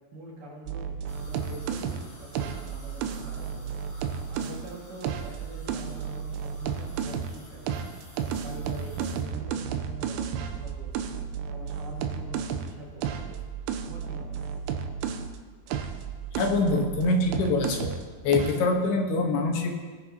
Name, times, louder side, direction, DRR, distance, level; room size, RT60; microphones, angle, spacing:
voice 1, 0.1-3.8 4.3-7.7 8.2-11.1 11.5-13.5 13.8-14.5, right 1 dB, 60° right, -4 dB, 3.3 m, -44 dB
sound 1, 0.7-4.6 5.0-7.4 7.7-15.4 15.7-18.1 18.3-18.7, right 7 dB, 90° right, 2.7 m, -33 dB
sound 2, 1.1-9.2, left 1 dB, 20° left, 2.6 m, -53 dB
voice 2, 16.3-17.9 18.2-19.7, left 3 dB, 80° left, 2 dB, 3.2 m, -24 dB
19.5 x 9.7 x 2.8 m, 1.5 s
omnidirectional pair, 4.6 m